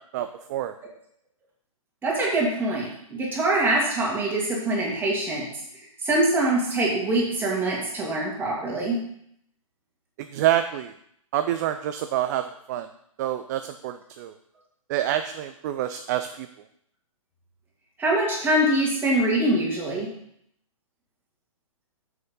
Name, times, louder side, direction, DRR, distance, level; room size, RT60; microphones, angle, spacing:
voice 1, 0.1-0.7 10.2-10.9 11.3-12.9 13.2-14.3 14.9-16.5, right 12 dB, 30° right, 9 dB, 0.4 m, -27 dB
voice 2, 2.0-5.5 6.0-9.0 18.0-20.1, right 1 dB, 10° right, -4 dB, 2.6 m, -24 dB
7.1 x 6.3 x 5.4 m, 0.70 s
hypercardioid pair, 130°, 18 cm